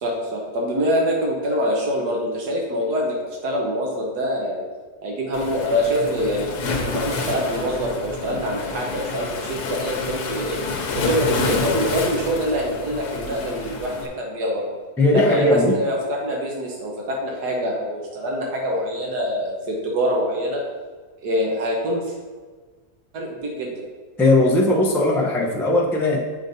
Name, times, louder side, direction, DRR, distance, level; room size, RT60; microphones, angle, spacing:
voice 1, 0.0-3.2 3.4-4.6 5.0-6.5 6.8-10.6 10.9-14.7 15.1-20.6 21.2-22.0 23.1-23.7, equal, 85° right, -2 dB, 1.6 m, -25 dB
Waves surf, 5.3-14.1, left 3 dB, 85° left, 1.3 m, -28 dB
voice 2, 15.0-15.7 24.2-26.2, left 2 dB, 5° left, -3 dB, 0.4 m, -18 dB
8.0 x 5.2 x 2.7 m, 1.4 s
omnidirectional pair, 1.7 m